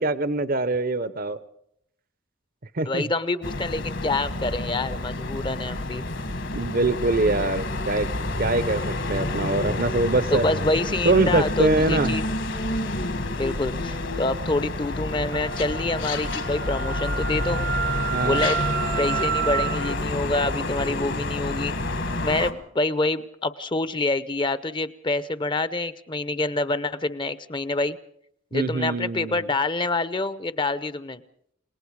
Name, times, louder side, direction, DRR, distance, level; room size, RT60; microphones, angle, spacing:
voice 1, 0.0-1.4 2.7-3.0 6.5-8.1 8.4-10.4 11.0-12.1 18.1-18.4 28.5-29.5, right 2 dB, 45° right, 14 dB, 0.8 m, -23 dB
voice 2, 2.9-6.0 10.3-12.2 13.3-17.6 18.2-18.6 19.0-21.7 22.2-28.0 28.5-31.2, left 2 dB, 25° left, 15 dB, 0.7 m, -26 dB
sound 1, 3.4-22.5, left 2 dB, 60° left, 1.8 m, -29 dB
Wind instrument woodwind instrument, 15.3-20.0, right 8 dB, 75° right, 1.2 m, -30 dB
29.5 x 19.0 x 4.8 m, 0.72 s
head